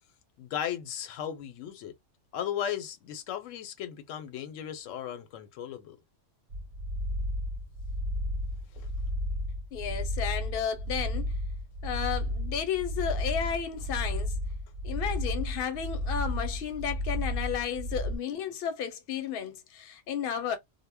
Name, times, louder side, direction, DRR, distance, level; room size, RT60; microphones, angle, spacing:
voice 1, 0.4-1.9 2.3-6.0 8.7-8.9, left 9 dB, 85° left, 1.0 m, -36 dB
sound 1, 6.5-18.2, left 1 dB, 60° right, 0.6 m, -33 dB
voice 2, 9.7-11.3 11.8-14.4 14.8-20.6, left 8 dB, 55° left, 0.8 m, -33 dB
2.1 x 2.1 x 3.3 m
omnidirectional pair, 1.3 m